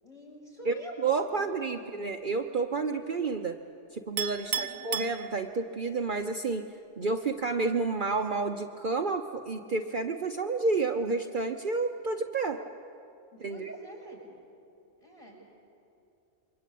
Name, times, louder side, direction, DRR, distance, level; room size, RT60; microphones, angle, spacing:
voice 1, 0.0-1.0 1.3-1.5 1.8-1.9 4.5-4.8 13.3-14.2 15.0-15.4, equal, 30° left, -3 dB, 7.3 m, -46 dB
voice 2, 1.0-3.6 3.9-6.7 7.0-12.6 13.4-13.7, right 4 dB, 50° right, 5 dB, 1.0 m, -30 dB
Chink clink, 4.2-5.8, right 8 dB, 65° right, 1.1 m, -34 dB
28.0 x 23.5 x 8.5 m, 2.8 s
omnidirectional pair, 1.2 m